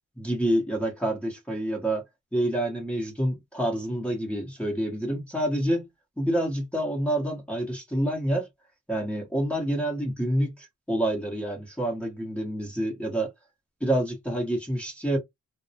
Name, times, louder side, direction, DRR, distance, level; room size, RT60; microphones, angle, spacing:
voice 1, 0.2-2.0 2.3-5.9 6.2-8.5 8.9-13.3 13.8-15.2, right 1 dB, 5° left, 0.9 m, -27 dB
2.2 x 2.0 x 2.7 m
cardioid pair, 90°, 30 cm